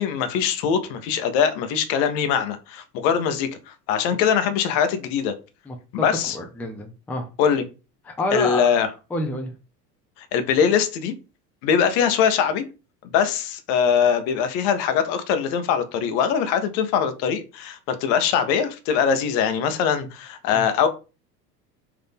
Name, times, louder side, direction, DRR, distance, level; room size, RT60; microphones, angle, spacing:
voice 1, 0.0-5.4 5.9-6.4 7.4-7.6 8.3-8.9 10.2-11.1 11.6-12.6 13.0-20.9, left 7 dB, 50° left, 0.8 m, -22 dB
voice 2, 6.1-7.3 8.1-8.8 9.1-9.5 20.5-20.7, left 2 dB, 5° left, 0.5 m, -28 dB
3.8 x 2.7 x 3.5 m
figure-of-eight pair, 75°, 50 cm